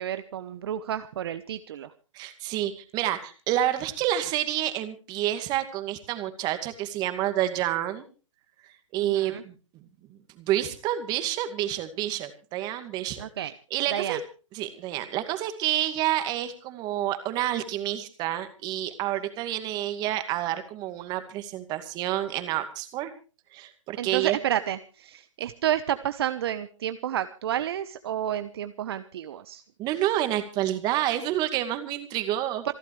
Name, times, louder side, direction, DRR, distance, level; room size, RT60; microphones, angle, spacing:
voice 1, 0.0-1.9 9.0-9.4 13.2-13.5 13.9-14.2 24.0-29.6 32.6-32.7, right 11 dB, 50° right, 12 dB, 1.0 m, -30 dB
voice 2, 2.1-8.0 8.9-9.5 10.1-13.2 13.7-14.2 14.5-23.1 23.5-24.4 29.8-32.7, right 13 dB, 25° right, 9 dB, 2.2 m, -29 dB
27.5 x 12.0 x 3.3 m, 0.37 s
hypercardioid pair, 140°, 16 cm